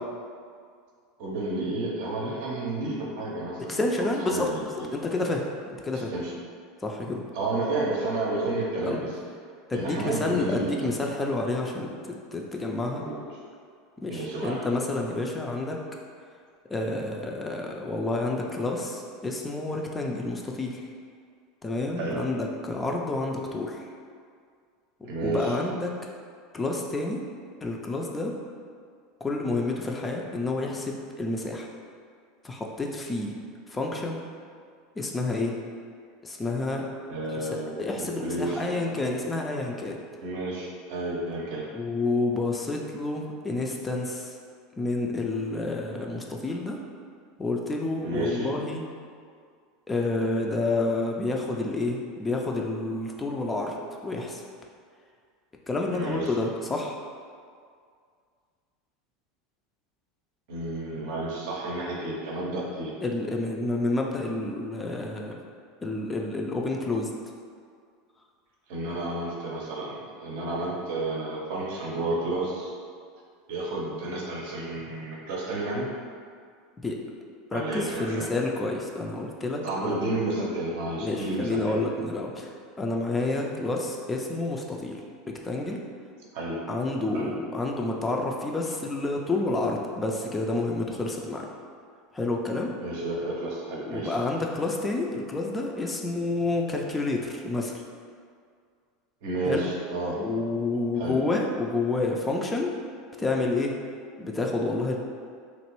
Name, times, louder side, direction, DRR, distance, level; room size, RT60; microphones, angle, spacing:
voice 1, 1.2-3.9 4.2-4.6 5.9-6.3 7.3-9.1 9.7-10.9 13.0-13.2 14.1-14.6 22.0-22.2 25.0-25.6 37.1-38.8 40.2-41.7 48.0-48.5 55.9-56.3 60.5-62.9 68.7-72.7 73.5-75.9 77.5-78.2 79.6-81.7 86.3-86.6 87.1-87.3 92.8-94.2 99.2-100.2 100.9-101.2, right 2 dB, 60° right, -3 dB, 0.6 m, -31 dB
voice 2, 3.7-5.4 5.8-6.1 6.8-7.2 8.9-9.0 9.7-12.0 12.3-13.0 14.0-15.8 16.7-20.8 21.6-23.8 25.2-25.9 26.5-27.2 27.6-28.3 29.2-31.7 32.4-33.3 33.7-34.2 35.0-35.6 36.2-36.9 37.4-37.5 37.8-40.0 41.7-44.3 44.8-46.8 47.4-48.8 49.9-53.7 54.0-54.4 55.7-57.0 63.0-65.4 65.8-67.1 76.8-77.0 77.5-80.0 81.0-85.0 85.3-85.8 86.7-91.5 92.1-92.7 93.8-97.7 99.5-99.7 100.2-102.7 103.2-103.7 104.2-105.0, left 2 dB, 20° left, 0 dB, 0.4 m, -29 dB
3.0 x 2.5 x 2.9 m, 2.1 s
hypercardioid pair, 80°, 0 cm